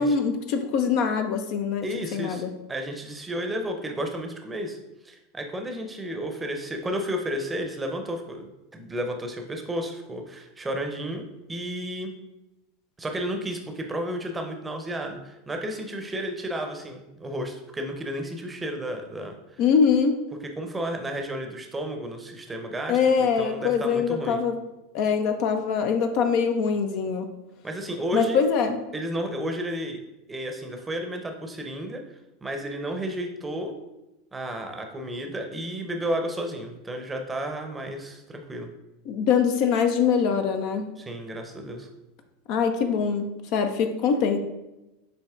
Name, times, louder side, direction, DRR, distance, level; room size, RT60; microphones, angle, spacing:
voice 1, 0.0-1.9 2.1-2.5 19.6-20.2 22.9-24.6 24.9-27.3 28.1-28.8 39.1-40.9 42.5-44.4, left 6 dB, 55° left, 7 dB, 0.4 m, -23 dB
voice 2, 1.8-4.8 5.0-12.1 13.0-19.6 20.4-24.4 27.6-28.4 28.9-30.0 30.3-32.0 32.4-33.7 34.3-38.7 41.0-41.9, equal, 15° right, 4 dB, 0.7 m, -32 dB
7.3 x 2.9 x 2.4 m, 0.97 s
figure-of-eight pair, 85°, 0 cm